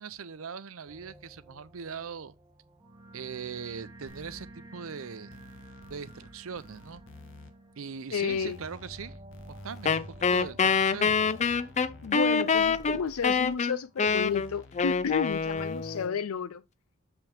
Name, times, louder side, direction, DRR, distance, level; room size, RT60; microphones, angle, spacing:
voice 1, 0.0-2.3 3.1-5.4 5.9-7.0 7.8-9.2 9.5-11.2, right 6 dB, 70° right, 0.6 m, -40 dB
sound 1, 0.8-14.4, right 1 dB, 20° right, 1.1 m, -51 dB
sound 2, 4.1-4.5 5.3-6.3 6.6-7.5 8.3-10.5 11.1-12.1 12.6-13.5 14.1-16.1, left 1 dB, 60° left, 1.1 m, -50 dB
voice 2, 8.1-8.6 12.0-16.6, left 6 dB, 85° left, 0.5 m, -31 dB
Wind instrument woodwind instrument, 9.8-16.1, left 5 dB, 35° left, 0.4 m, -26 dB
6.9 x 5.8 x 3.4 m
head